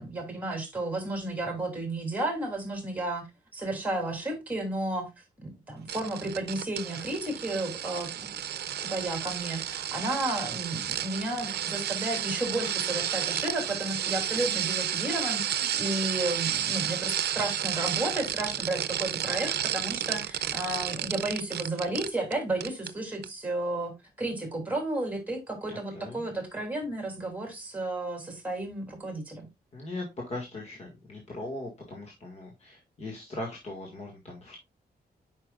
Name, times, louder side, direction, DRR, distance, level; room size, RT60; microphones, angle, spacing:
voice 1, 0.0-3.3 3.5-5.1 5.4-8.3 8.8-23.9 24.2-29.5, right 2 dB, 10° right, 2.9 m, -32 dB
sound 1, 5.9-22.3 22.6-22.9 23.2-23.3, right 10 dB, 85° right, 0.5 m, -32 dB
voice 2, 25.7-26.2 29.7-34.6, left 2 dB, 40° left, 1.9 m, -39 dB
8.7 x 5.8 x 2.4 m
wide cardioid pair, 140°, 17 cm